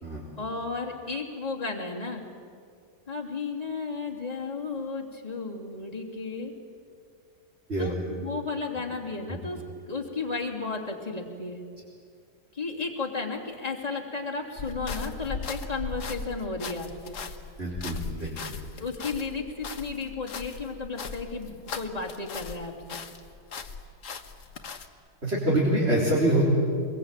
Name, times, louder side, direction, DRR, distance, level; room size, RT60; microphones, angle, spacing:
voice 1, 0.4-2.2 3.1-6.5 7.8-11.6 12.5-17.2 18.8-23.0, left 4 dB, 25° left, -1 dB, 3.0 m, -34 dB
sound 1, 14.6-22.6 22.9-24.9, left 4 dB, 55° left, 1.5 m, -38 dB
voice 2, 17.6-18.4 25.2-26.5, right 1 dB, 40° right, -6 dB, 4.6 m, -25 dB
25.0 x 22.0 x 9.0 m, 2.3 s
omnidirectional pair, 1.7 m